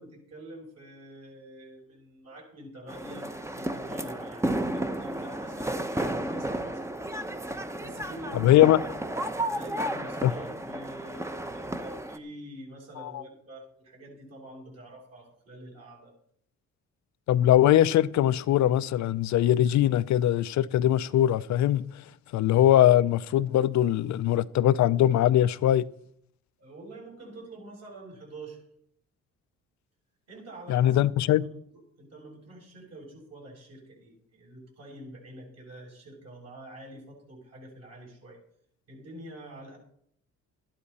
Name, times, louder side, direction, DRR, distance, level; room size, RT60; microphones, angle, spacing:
voice 1, 0.0-6.8 7.8-8.8 9.5-16.1 26.6-28.6 30.3-38.4 38.9-39.8, right 1 dB, 55° right, 7.0 m, -46 dB
sound 1, 2.9-12.2, right 1 dB, 10° right, 0.9 m, -33 dB
voice 2, 8.3-8.8 10.2-10.3 13.0-13.2 17.3-21.8 22.3-25.8 30.7-31.4, left 12 dB, 70° left, 0.6 m, -21 dB
13.0 x 11.5 x 4.2 m
cardioid pair, 90°, 30 cm